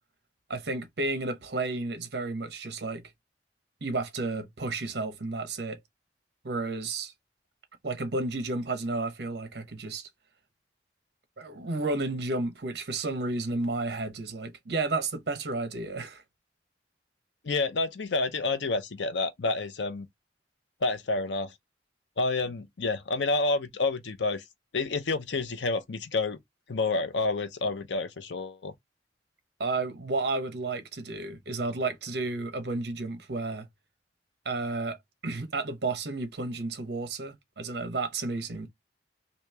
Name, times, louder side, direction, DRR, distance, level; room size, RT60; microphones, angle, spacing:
voice 1, 0.5-3.0 3.8-5.8 6.4-7.1 7.8-10.1 11.4-16.2 29.6-33.7 34.4-35.0 35.2-38.7, right 3 dB, 65° right, 0.9 m, -32 dB
voice 2, 17.4-20.1 20.8-21.5 22.2-24.4 24.7-26.4 26.7-28.7, left 3 dB, 85° left, 0.6 m, -29 dB
3.0 x 2.8 x 3.3 m
head